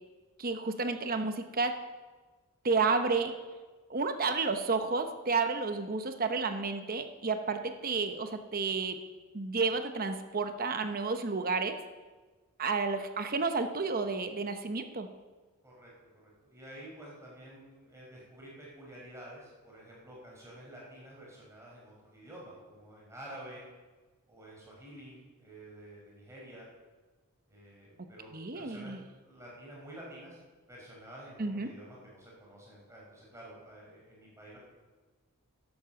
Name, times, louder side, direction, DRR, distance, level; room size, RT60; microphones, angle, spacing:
voice 1, 0.4-1.8 2.6-3.3 3.9-9.0 9.3-11.8 12.6-15.1 28.3-29.0 31.4-31.7, right 4 dB, 40° right, 7 dB, 0.9 m, -31 dB
voice 2, 16.2-23.7 24.3-26.7 27.5-29.0 29.2-30.4 30.7-34.6, right 1 dB, 15° right, -4 dB, 4.8 m, -50 dB
11.5 x 11.0 x 7.1 m, 1.3 s
head